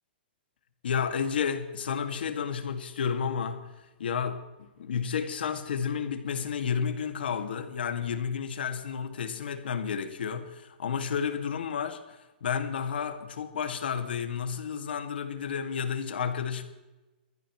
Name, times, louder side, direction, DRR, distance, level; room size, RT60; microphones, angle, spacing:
voice 1, 0.8-3.7 4.0-16.6, left 7 dB, 75° left, 2.1 m, -31 dB
22.0 x 14.5 x 3.2 m
hypercardioid pair, 170°, 5 cm